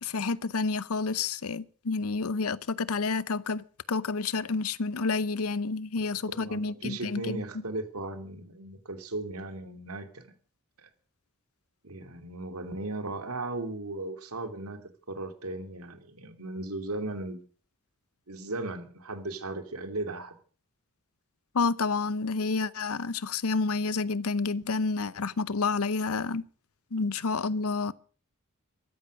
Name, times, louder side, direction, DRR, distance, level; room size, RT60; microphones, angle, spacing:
voice 1, 0.0-7.4 21.5-26.4 26.9-27.9, left 4 dB, 80° left, 0.7 m, -29 dB
voice 2, 6.3-10.3 10.8-10.9 11.8-17.4 18.3-20.3, right 2 dB, 85° right, 2.9 m, -37 dB
14.5 x 13.5 x 6.4 m
head